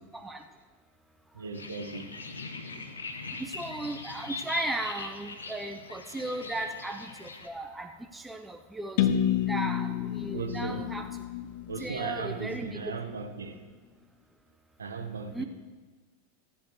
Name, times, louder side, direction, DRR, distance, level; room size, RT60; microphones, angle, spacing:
voice 1, 1.3-2.1 10.3-10.9 11.7-13.6 14.8-15.5, right 4 dB, 70° right, 1.2 m, -37 dB
sound 1, 1.5-7.5, left 3 dB, 75° left, 1.1 m, -41 dB
voice 2, 3.5-9.1 9.5-9.9 10.2-11.1 11.8-12.8 15.3-15.4, right 2 dB, 5° right, 0.6 m, -36 dB
sound 2, 9.0-12.8, left 10 dB, 50° left, 0.7 m, -30 dB
14.5 x 8.2 x 6.3 m
figure-of-eight pair, 90°, 0 cm